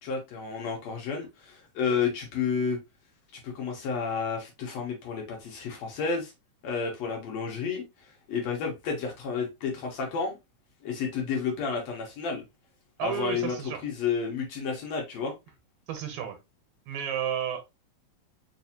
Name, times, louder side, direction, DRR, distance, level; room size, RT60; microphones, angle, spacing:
voice 1, 0.0-2.8 3.4-6.3 6.6-7.8 8.3-10.4 10.8-12.4 13.0-15.3, left 5 dB, 65° left, 2.0 m, -31 dB
voice 2, 13.0-13.8 15.9-16.4 16.9-17.6, right 8 dB, 75° right, 2.1 m, -31 dB
4.9 x 2.6 x 2.7 m
omnidirectional pair, 3.5 m